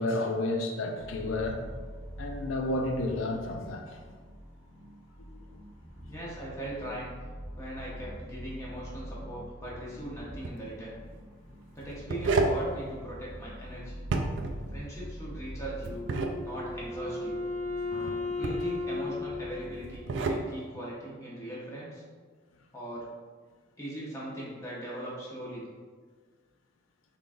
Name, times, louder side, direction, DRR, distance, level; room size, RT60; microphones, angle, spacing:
voice 1, 0.0-1.6 2.2-3.8 5.2-5.3 17.9-18.3, left 2 dB, 80° left, 4 dB, 0.5 m, -31 dB
sound 1, 1.0-20.0, equal, 55° left, 1.3 m, -45 dB
voice 2, 6.1-7.1 7.6-11.0 11.7-14.0 14.7-16.1 16.4-17.4 18.4-22.0 22.7-23.1 23.8-25.7, right 1 dB, 15° left, -6 dB, 0.8 m, -40 dB
sound 2, 10.3-10.6 11.8-12.6 14.0-14.6 15.8-16.4 18.1-18.7 19.8-20.4, right 3 dB, 65° right, 0.3 m, -29 dB
Wind instrument woodwind instrument, 16.0-20.5, left 3 dB, 35° right, 0.8 m, -35 dB
3.8 x 3.5 x 2.5 m, 1.5 s
head